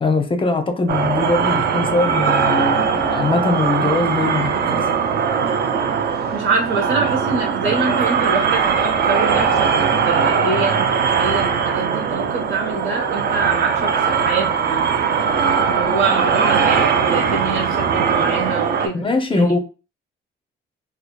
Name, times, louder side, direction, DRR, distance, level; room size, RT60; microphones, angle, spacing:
voice 1, 0.0-4.9 18.9-19.6, left 3 dB, 25° left, 0.5 m, -21 dB
sound 1, 0.9-18.9, right 6 dB, 55° right, 0.4 m, -20 dB
voice 2, 6.3-14.9 15.7-19.5, right 4 dB, 80° right, 1.0 m, -25 dB
2.7 x 2.3 x 2.2 m
cardioid pair, 90°, 20 cm